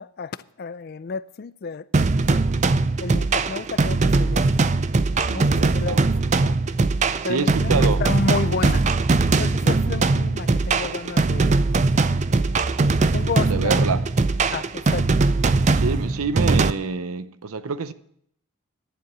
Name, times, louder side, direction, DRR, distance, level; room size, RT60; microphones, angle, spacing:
voice 1, 0.0-1.9 3.0-4.5 5.3-6.1 7.2-8.8 9.3-11.6 13.0-13.9 14.5-15.3, left 4 dB, 45° left, 0.4 m, -31 dB
sound 1, 1.9-16.7, right 3 dB, 30° right, 0.4 m, -20 dB
voice 2, 5.3-6.0 6.4-6.5 7.3-8.0 13.5-14.0 15.7-17.9, right 4 dB, 75° right, 0.7 m, -27 dB
11.5 x 7.6 x 8.0 m
head